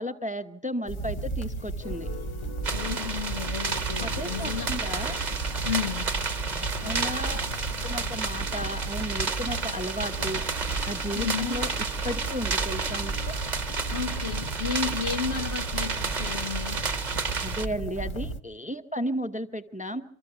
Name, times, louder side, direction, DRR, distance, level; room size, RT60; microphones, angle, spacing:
voice 1, 0.0-2.1 4.0-5.2 6.8-7.4 7.8-10.4 10.8-11.7 12.0-13.3 17.4-20.0, equal, 10° right, 0.8 m, -34 dB
sound 1, 0.9-18.4, right 2 dB, 30° left, 0.9 m, -34 dB
sound 2, 1.8-15.2, left 2 dB, 55° left, 1.8 m, -49 dB
sound 3, 2.6-17.7, right 4 dB, 40° right, 1.1 m, -32 dB
voice 2, 2.7-4.7 5.6-6.1 11.1-11.6 13.9-16.8, left 6 dB, 85° left, 1.7 m, -32 dB
25.5 x 14.5 x 8.0 m
omnidirectional pair, 1.2 m